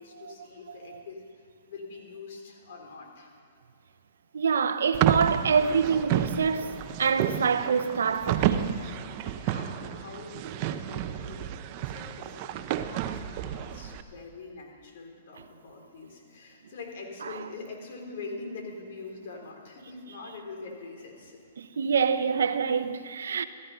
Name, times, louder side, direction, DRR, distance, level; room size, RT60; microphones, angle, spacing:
voice 1, 0.0-3.3 9.2-12.6 12.9-21.4, left 3 dB, 60° left, 3.7 m, -44 dB
voice 2, 4.3-8.8 21.6-23.4, right 6 dB, 80° right, 0.8 m, -26 dB
sound 1, 4.9-14.0, right 10 dB, 40° right, 0.8 m, -31 dB
15.5 x 13.5 x 5.7 m
hypercardioid pair, 135°, 0 cm